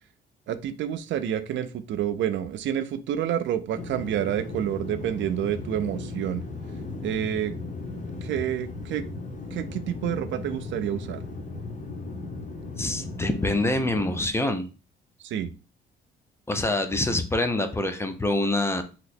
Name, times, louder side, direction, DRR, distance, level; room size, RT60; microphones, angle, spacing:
voice 1, 0.5-6.4 7.0-7.5 8.2-9.0 9.5-11.2 15.2-15.5, right 10 dB, 70° right, 12 dB, 0.4 m, -28 dB
sound 1, 3.7-14.3, left 3 dB, 40° left, 0.8 m, -36 dB
voice 2, 12.8-14.7 16.5-18.8, left 2 dB, 15° left, 8 dB, 0.5 m, -25 dB
2.8 x 2.1 x 4.1 m, 0.33 s
cardioid pair, 90°, 20 cm